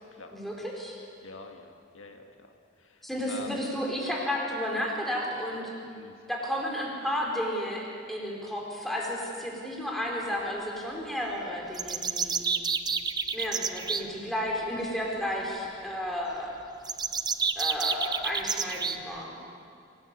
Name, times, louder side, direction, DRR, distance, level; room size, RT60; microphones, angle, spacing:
voice 1, 0.3-1.0 3.0-5.6 6.3-12.4 13.3-16.5 17.5-19.4, equal, ahead, -2 dB, 4.6 m, -32 dB
voice 2, 1.2-2.5 2.8-3.0 3.3-3.5 5.8-6.1 13.6-13.8, left 3 dB, 85° left, 4 dB, 1.8 m, -46 dB
sound 1, 11.7-14.0 16.8-19.0, right 5 dB, 20° right, 0.7 m, -29 dB
24.5 x 18.5 x 8.5 m, 2.4 s
head